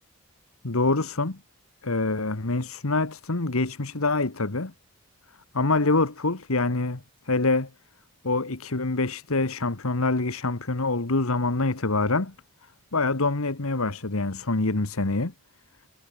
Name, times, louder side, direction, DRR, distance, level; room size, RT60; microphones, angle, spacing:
voice 1, 0.6-1.4 1.8-4.7 5.5-7.0 7.3-7.7 8.2-12.3 12.9-15.3, left 3 dB, 80° left, 1.6 m, -25 dB
head